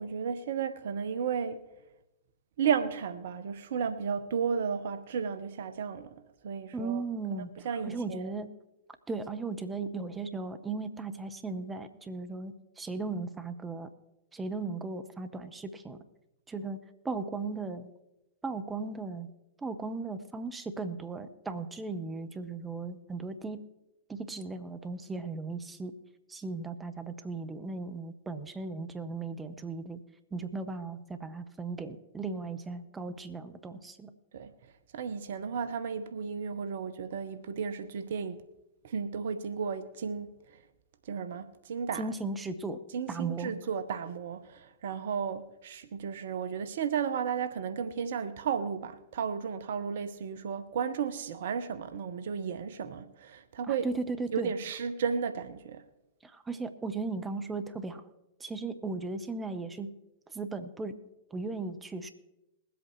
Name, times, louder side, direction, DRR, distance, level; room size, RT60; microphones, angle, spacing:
voice 1, 0.0-1.6 2.6-6.1 6.4-7.0 7.3-8.3 34.3-34.5 34.9-38.4 38.8-40.4 41.1-42.0 42.9-53.9 54.3-55.9, right 6 dB, 60° right, 0.7 m, -33 dB
voice 2, 6.7-8.5 9.1-13.9 14.3-16.0 16.5-16.8 17.0-17.9 18.4-19.3 19.6-23.6 24.1-25.9 26.3-30.0 30.3-34.1 42.0-42.8 43.1-43.5 53.7-54.5 56.2-58.0 58.4-59.9 60.3-60.9 61.3-62.1, right 3 dB, 15° right, 0.9 m, -36 dB
21.5 x 8.1 x 3.1 m
figure-of-eight pair, 100°, 0 cm